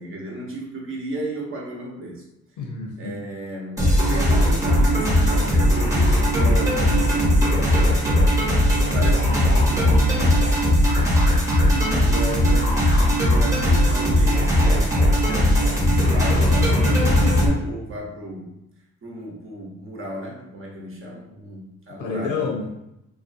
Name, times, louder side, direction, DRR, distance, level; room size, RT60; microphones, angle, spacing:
voice 1, 0.0-2.2 3.0-8.7 8.9-10.4 11.6-18.5 19.0-22.5, right 1 dB, 45° right, -2 dB, 0.8 m, -34 dB
voice 2, 2.6-3.2 11.6-11.7 22.0-22.8, left 4 dB, 85° left, 1 dB, 0.6 m, -29 dB
sound 1, 3.8-17.5, equal, 10° right, 0.8 m, -18 dB
2.5 x 2.1 x 2.5 m, 0.85 s
cardioid pair, 90°, 30 cm